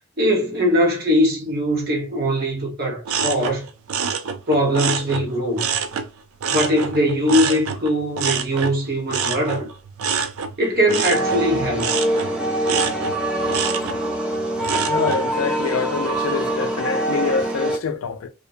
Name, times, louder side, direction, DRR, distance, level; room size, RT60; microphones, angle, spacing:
voice 1, 0.2-3.7 4.5-5.7 6.5-9.7 10.6-11.9, equal, 50° right, 1.0 m, -21 dB
sound 1, 3.1-6.1 6.4-15.3 15.7-16.1, right 6 dB, 80° right, 0.4 m, -27 dB
sound 2, 11.1-17.8, right 1 dB, 5° right, 0.5 m, -24 dB
voice 2, 14.9-18.3, left 5 dB, 75° left, 0.4 m, -25 dB
2.6 x 2.1 x 2.6 m
head